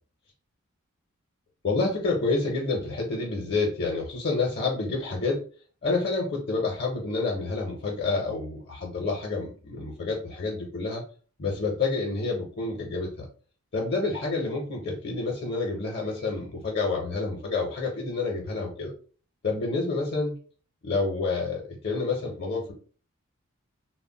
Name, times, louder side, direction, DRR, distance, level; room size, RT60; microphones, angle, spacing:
voice 1, 1.6-5.4 5.8-11.0 11.4-13.2 13.7-18.9 19.4-20.4 20.8-22.7, left 3 dB, 50° left, -1 dB, 0.6 m, -28 dB
2.1 x 2.0 x 3.7 m, 0.40 s
head